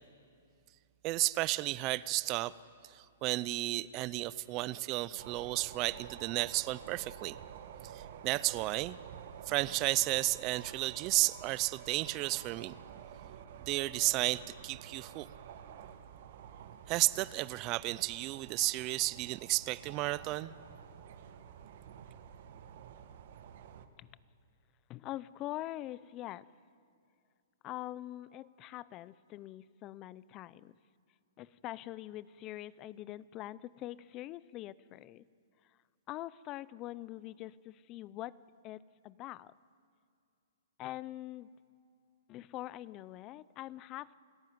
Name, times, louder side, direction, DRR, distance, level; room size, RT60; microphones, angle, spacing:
voice 1, 1.0-2.5 2.8-7.4 7.8-9.0 9.5-12.8 13.7-15.3 16.9-20.5, right 19 dB, 30° right, 19 dB, 0.5 m, -33 dB
sound 1, 5.2-23.9, right 8 dB, 55° right, 1.6 m, -50 dB
voice 2, 24.9-26.5 27.6-30.7 31.4-35.2 35.6-35.8 36.1-38.3 38.6-39.6 40.8-41.5 42.3-44.1, left 15 dB, 30° left, 19 dB, 0.6 m, -44 dB
28.5 x 14.0 x 9.5 m, 2.4 s
hypercardioid pair, 145°, 0 cm